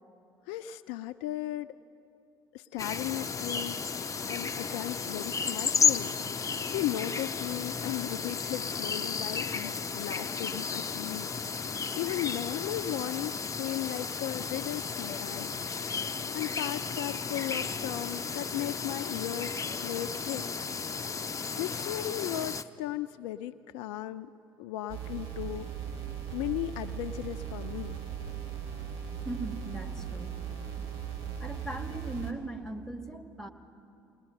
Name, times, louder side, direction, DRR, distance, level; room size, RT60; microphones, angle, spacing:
voice 1, 0.5-1.8 2.5-6.2 6.7-15.6 16.3-20.7 21.6-24.3 24.6-25.7 26.3-28.0, left 14 dB, 65° left, 11 dB, 0.4 m, -36 dB
sound 1, 2.8-22.6, left 5 dB, 30° left, 0.7 m, -33 dB
sound 2, 24.9-32.3, right 8 dB, 50° right, 2.4 m, -38 dB
voice 2, 29.2-30.3 31.4-33.5, right 2 dB, 5° left, 4 dB, 2.0 m, -39 dB
21.0 x 20.0 x 7.9 m, 2.6 s
figure-of-eight pair, 55°, 12 cm